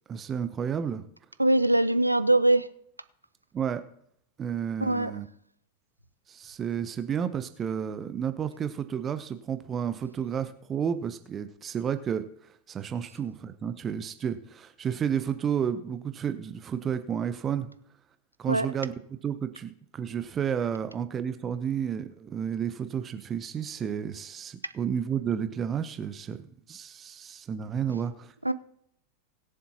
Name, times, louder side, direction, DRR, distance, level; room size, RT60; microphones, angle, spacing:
voice 1, 0.1-1.0 3.5-3.8 4.4-5.3 6.3-17.7 18.4-18.9 19.2-26.4 26.7-28.3, right 8 dB, 25° right, 0.8 m, -31 dB
voice 2, 1.4-2.7 4.8-5.1 18.5-18.7 28.4-28.5, right 1 dB, 85° right, 0.6 m, -22 dB
20.5 x 7.4 x 2.9 m
figure-of-eight pair, 90°, 0 cm